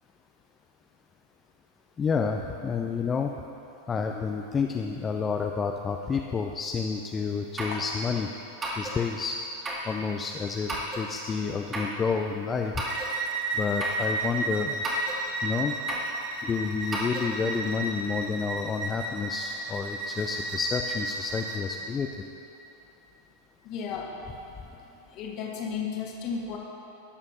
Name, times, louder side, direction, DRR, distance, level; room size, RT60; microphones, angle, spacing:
voice 1, 2.0-3.3 3.9-8.3 8.7-9.4 9.9-10.7 11.0-12.7 13.5-14.8 15.4-15.8 16.4-22.1, left 5 dB, 20° left, 3 dB, 0.4 m, -29 dB
sound 1, 6.9-7.0 7.6-7.8 8.6-9.0 9.6-9.9 10.7-11.1 11.7-12.0 12.8-13.1 13.8-14.0 14.8-15.2 15.9-16.1 16.9-17.3, right 1 dB, 20° right, 2.0 m, -33 dB
Bowed string instrument, 12.8-21.6, right 2 dB, 40° right, 1.4 m, -33 dB
voice 2, 23.6-24.8 25.0-26.6, left 6 dB, 40° left, 0 dB, 1.5 m, -35 dB
18.0 x 7.0 x 2.9 m, 2.9 s
figure-of-eight pair, 90°, 0 cm